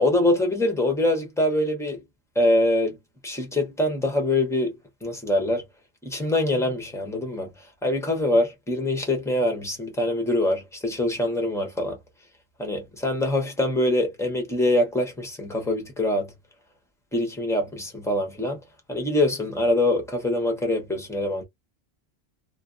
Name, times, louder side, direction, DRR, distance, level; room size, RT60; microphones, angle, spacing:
voice 1, 0.0-2.0 2.3-3.0 3.2-5.6 6.0-7.5 7.8-12.0 12.6-16.3 17.1-18.6 18.9-21.4, left 1 dB, 5° left, 0.7 m, -24 dB
2.7 x 2.2 x 2.4 m
omnidirectional pair, 1.1 m